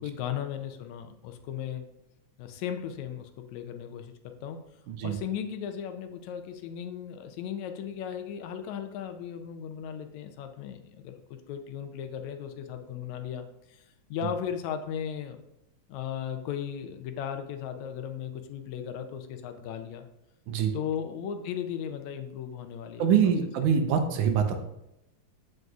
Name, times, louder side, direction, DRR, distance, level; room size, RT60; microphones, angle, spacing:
voice 1, 0.0-1.9 2.4-4.6 5.0-13.8 14.1-15.4 15.9-20.1 20.7-23.3, left 8 dB, 75° left, 7 dB, 1.9 m, -36 dB
voice 2, 4.9-5.2 20.5-20.7 23.0-24.6, right 7 dB, 85° right, 6 dB, 2.3 m, -24 dB
7.8 x 7.6 x 2.4 m, 0.85 s
omnidirectional pair, 3.5 m